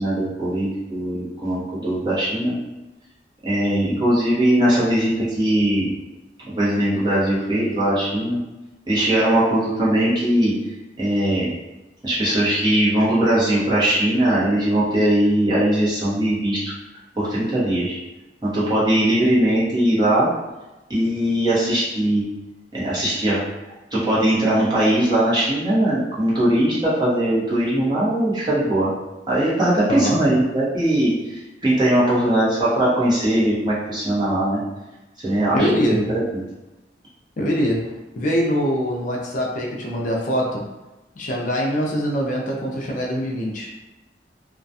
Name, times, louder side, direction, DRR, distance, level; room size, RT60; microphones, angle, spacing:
voice 1, 0.0-2.5 3.4-5.9 6.5-8.4 8.9-10.5 11.0-11.5 12.0-16.7 17.2-18.0 18.4-20.3 20.9-22.2 22.7-23.4 23.9-28.9 29.3-34.6 35.2-36.4, right 1 dB, 25° right, -9 dB, 0.9 m, -20 dB
voice 2, 29.9-30.2 35.5-36.1 37.4-40.6 41.2-43.7, equal, 45° left, -2 dB, 0.4 m, -23 dB
2.3 x 2.2 x 2.6 m, 1.0 s
head